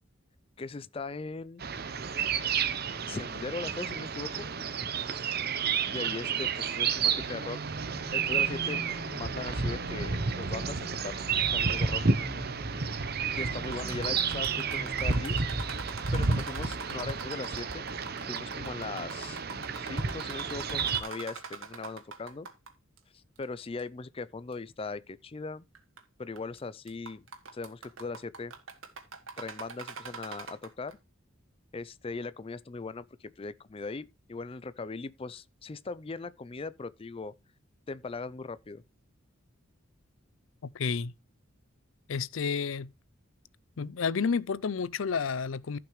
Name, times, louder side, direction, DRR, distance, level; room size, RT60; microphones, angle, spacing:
voice 1, 0.6-1.6 3.1-4.5 5.9-7.6 8.1-8.9 9.2-11.2 11.5-12.0 13.3-15.4 16.1-17.8 18.3-19.4 19.8-22.5 23.1-25.6 26.2-27.3 27.5-28.5 29.4-31.0 31.7-37.3 37.9-38.8, left 3 dB, 30° left, 0.4 m, -39 dB
sound 1, 1.6-21.0, right 5 dB, 50° right, 0.9 m, -31 dB
sound 2, 7.7-15.6, right 1 dB, 10° left, 5.7 m, -43 dB
sound 3, 13.6-22.7 23.0-23.1 23.8-23.9 24.5-24.6 25.7-26.0 26.4-26.6 26.9-30.9, right 4 dB, 80° right, 2.0 m, -42 dB
voice 2, 40.6-41.1 42.1-42.9 43.8-45.8, left 5 dB, 75° left, 0.5 m, -30 dB
15.0 x 5.9 x 3.1 m
head